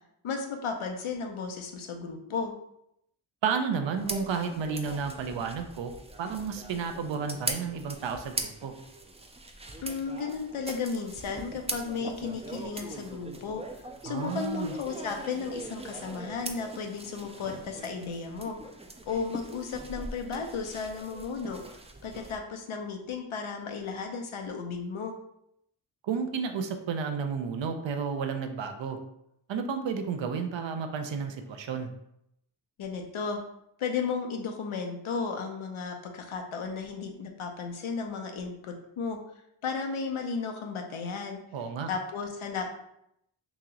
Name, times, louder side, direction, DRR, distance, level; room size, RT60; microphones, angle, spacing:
voice 1, 0.2-2.5 6.2-6.3 9.8-13.6 14.0-18.6 19.1-21.6 22.0-25.2 32.8-33.4 33.8-39.2 39.6-41.4 41.9-42.7, left 5 dB, 85° left, 3 dB, 0.7 m, -34 dB
voice 2, 3.4-5.9 6.2-8.7 14.1-14.7 26.0-29.0 29.5-31.9 41.5-41.9, right 6 dB, 65° right, 7 dB, 0.6 m, -32 dB
sound 1, 4.0-22.4, right 2 dB, 15° right, 0.3 m, -41 dB
3.0 x 2.9 x 3.6 m, 0.78 s
cardioid pair, 60°, 48 cm